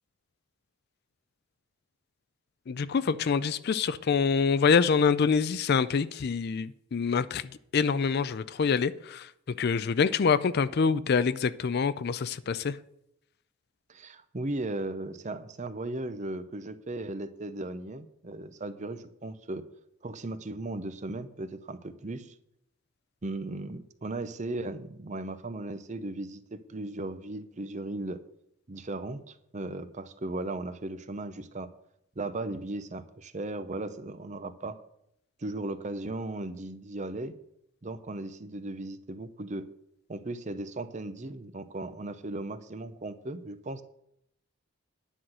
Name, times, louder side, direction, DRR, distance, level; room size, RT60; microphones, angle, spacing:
voice 1, 2.7-12.8, left 5 dB, 50° left, 0.4 m, -26 dB
voice 2, 13.9-19.6 20.0-22.3 23.2-28.2 28.7-31.7 32.2-34.8 35.4-37.4 37.8-39.7 40.1-43.8, right 2 dB, 35° right, 0.7 m, -37 dB
10.0 x 5.8 x 7.9 m
head